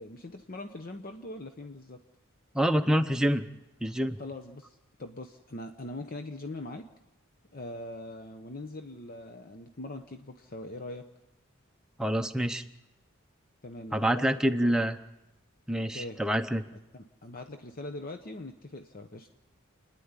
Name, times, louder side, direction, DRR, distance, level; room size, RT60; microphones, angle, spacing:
voice 1, 0.0-2.0 4.2-6.9 7.5-11.1 13.6-14.7 15.9-16.2 16.9-19.3, left 2 dB, 40° left, 7 dB, 0.9 m, -42 dB
voice 2, 2.5-3.5 3.8-4.2 12.0-12.6 13.9-15.0 15.7-16.6, equal, 5° right, 6 dB, 0.8 m, -26 dB
29.0 x 10.0 x 9.7 m, 0.96 s
head